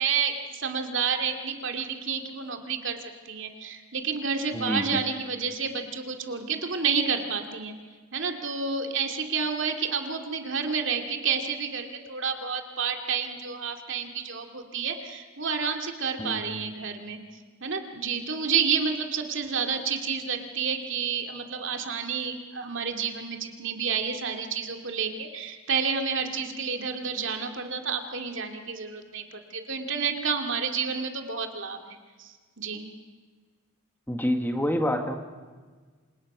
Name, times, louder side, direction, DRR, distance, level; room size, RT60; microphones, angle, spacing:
voice 1, 0.0-3.0 3.2-7.7 8.1-17.2 17.6-32.9, right 6 dB, 60° right, 4 dB, 2.6 m, -30 dB
voice 2, 4.5-5.0 16.2-16.4 34.1-35.2, equal, 10° left, 5 dB, 1.8 m, -27 dB
27.5 x 27.0 x 6.2 m, 1.4 s
head